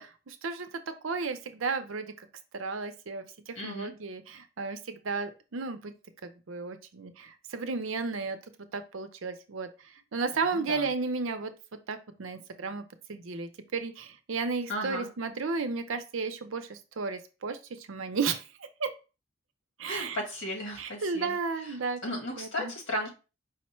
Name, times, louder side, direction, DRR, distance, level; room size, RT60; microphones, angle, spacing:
voice 1, 0.0-2.3 2.5-5.9 6.5-8.4 8.7-9.7 10.1-11.5 11.9-12.8 13.1-18.4 18.8-18.9 19.8-20.2 20.8-22.7, right 4 dB, 85° right, 8 dB, 0.6 m, -33 dB
voice 2, 3.5-3.9 10.3-10.9 14.7-15.1 19.9-21.8 22.0-23.1, equal, 85° left, 0 dB, 1.8 m, -36 dB
5.1 x 2.1 x 4.3 m, 0.32 s
head